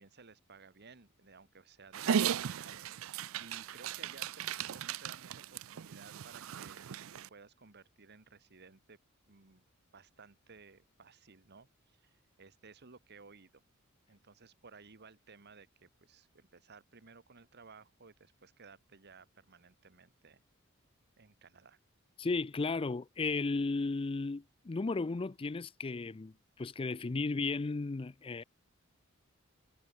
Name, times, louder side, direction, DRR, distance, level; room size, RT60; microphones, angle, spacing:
voice 1, 0.0-2.8 3.4-9.0 9.3-9.6 9.9-13.6 14.1-20.4 21.2-21.8, right 4 dB, 50° right, 1.5 m, -57 dB
Dog, 1.9-7.3, right 8 dB, 70° right, 0.5 m, -36 dB
voice 2, 22.2-28.4, left 3 dB, 25° left, 0.4 m, -34 dB
head